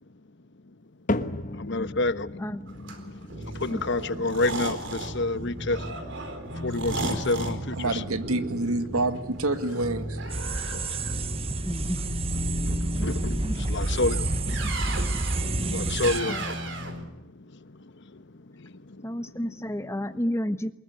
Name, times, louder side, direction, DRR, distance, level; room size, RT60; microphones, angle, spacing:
sound 1, 1.1-17.4 17.7-18.2 18.8-18.9 19.8-19.9, left 2 dB, 35° left, 1.3 m, -40 dB
voice 1, 1.5-2.4 3.1-5.9 6.6-8.0 10.5-11.4 12.6-16.4 16.8-19.2, left 2 dB, 55° left, 1.1 m, -31 dB
sound 2, 2.7-17.0, right 1 dB, 55° right, 4.2 m, -34 dB
voice 2, 7.8-10.2, right 2 dB, 85° right, 2.0 m, -27 dB
sound 3, 10.3-16.2, right 2 dB, 25° right, 0.8 m, -29 dB
voice 3, 11.6-12.0 13.0-13.6 15.4-16.0 16.2-16.4 19.0-20.7, equal, 15° left, 1.1 m, -31 dB
23.5 x 21.0 x 9.5 m
head